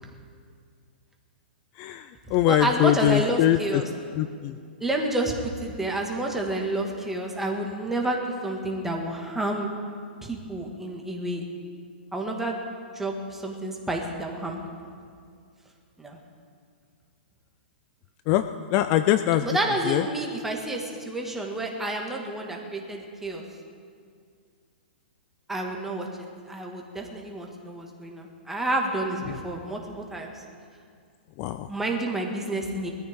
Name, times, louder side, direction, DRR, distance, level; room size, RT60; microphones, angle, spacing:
voice 1, 1.8-3.8 4.2-4.6 18.3-19.5 19.9-20.0 29.3-29.4 31.4-31.7, left 13 dB, 35° left, 11 dB, 0.5 m, -23 dB
voice 2, 2.5-3.9 4.8-9.7 10.2-11.4 12.1-12.6 12.9-14.6 14.8-14.9 16.0-16.2 19.4-23.4 25.5-30.3 31.7-32.9, right 2 dB, 5° right, 0 dB, 1.9 m, -29 dB
21.0 x 14.0 x 3.7 m, 2.2 s
hypercardioid pair, 140°, 6 cm